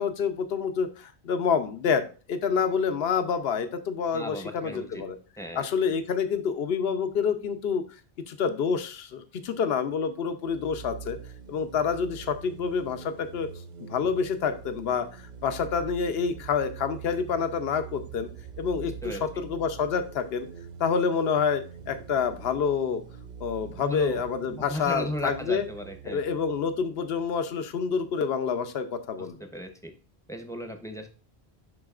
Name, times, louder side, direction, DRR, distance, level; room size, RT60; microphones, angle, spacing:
voice 1, 0.0-5.2 5.5-7.8 8.3-11.2 11.5-13.5 13.9-18.3 18.6-20.5 20.8-23.0 23.4-25.6 26.0-29.4, left 6 dB, 70° left, 8 dB, 1.0 m, -28 dB
voice 2, 4.1-5.0 5.4-5.6 19.0-19.2 23.8-24.2 24.6-26.2 29.5-29.9 30.3-31.1, equal, 5° left, 5 dB, 0.8 m, -35 dB
sound 1, 10.5-27.9, right 7 dB, 55° right, 0.6 m, -44 dB
11.0 x 3.9 x 2.5 m, 0.36 s
omnidirectional pair, 1.1 m